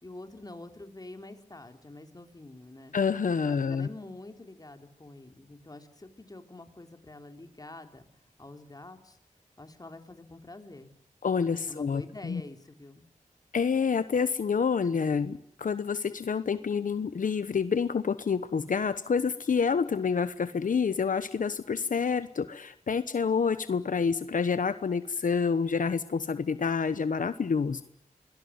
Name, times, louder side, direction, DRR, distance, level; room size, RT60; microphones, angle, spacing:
voice 1, 0.0-3.0 3.4-8.1 8.4-9.2 9.6-10.9 11.7-13.0, left 2 dB, 30° left, 6 dB, 3.5 m, -46 dB
voice 2, 2.9-3.9 11.2-12.4 13.5-27.8, left 6 dB, 75° left, 12 dB, 1.0 m, -28 dB
25.0 x 18.5 x 9.5 m, 0.70 s
wide cardioid pair, 65°, 14 cm